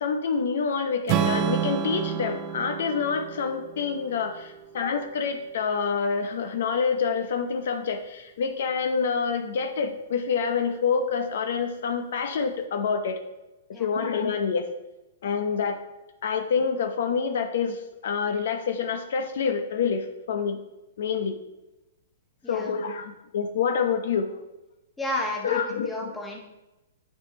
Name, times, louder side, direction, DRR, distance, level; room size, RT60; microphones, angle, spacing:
voice 1, 0.0-13.2 13.7-14.7 15.2-15.8 16.2-20.6 21.0-21.4 22.5-24.3 25.4-26.1, left 6 dB, 70° left, 6 dB, 0.7 m, -27 dB
Strum, 1.1-5.3, right 9 dB, 35° right, 0.4 m, -30 dB
voice 2, 22.4-22.8 25.0-26.4, left 1 dB, 5° left, -1 dB, 1.2 m, -32 dB
8.7 x 5.5 x 3.1 m, 1.0 s
hypercardioid pair, 145°, 0 cm